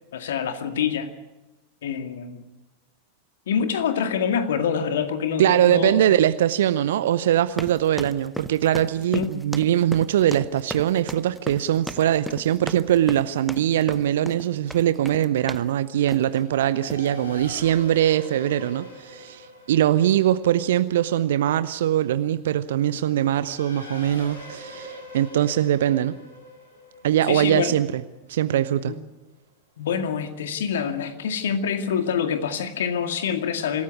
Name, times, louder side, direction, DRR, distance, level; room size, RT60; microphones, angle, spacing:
voice 1, 0.1-1.1 1.8-2.4 3.5-6.2 9.1-9.3 27.3-27.7 28.9-29.0 29.8-33.8, left 7 dB, 60° left, 7 dB, 2.1 m, -26 dB
voice 2, 5.4-26.2 27.0-28.0 28.3-28.9, right 11 dB, 60° right, 14 dB, 0.7 m, -22 dB
sound 1, 7.5-15.7 16.1-16.4 16.8-17.1, equal, ahead, 0.7 m, -36 dB
Race car auto racing / Accelerating revving vroom, 14.6-28.7, left 1 dB, 80° left, 6.9 m, -44 dB
26.0 x 14.0 x 9.6 m, 1.1 s
figure-of-eight pair, 90°, 0 cm